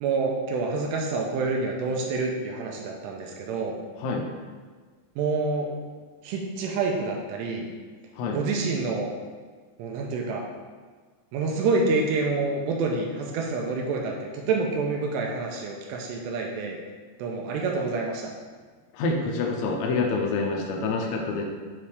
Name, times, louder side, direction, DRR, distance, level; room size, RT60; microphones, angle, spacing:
voice 1, 0.0-3.8 5.2-5.7 6.2-7.7 8.3-9.1 9.8-10.5 11.3-16.8 17.2-18.3, right 3 dB, 85° right, 0 dB, 2.6 m, -27 dB
voice 2, 18.9-21.4, left 3 dB, 90° left, 0 dB, 3.1 m, -27 dB
9.5 x 3.2 x 3.4 m, 1.5 s
omnidirectional pair, 5.1 m